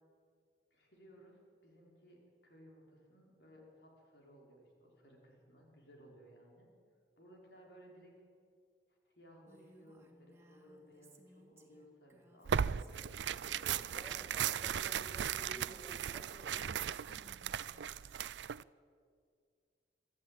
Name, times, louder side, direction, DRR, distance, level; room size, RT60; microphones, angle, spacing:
voice 1, 0.7-6.7 7.2-8.1 8.9-13.1 13.4-14.3, equal, 75° left, -1 dB, 4.8 m, -60 dB
Female speech woman speaking, 9.5-14.8 15.3-18.4, right 2 dB, 15° right, 2.2 m, -63 dB
Tearing, 12.5-18.6, right 8 dB, 85° right, 0.5 m, -37 dB
voice 2, 13.6-18.5, equal, 5° left, -1 dB, 6.9 m, -55 dB
25.0 x 14.0 x 8.9 m, 2.2 s
head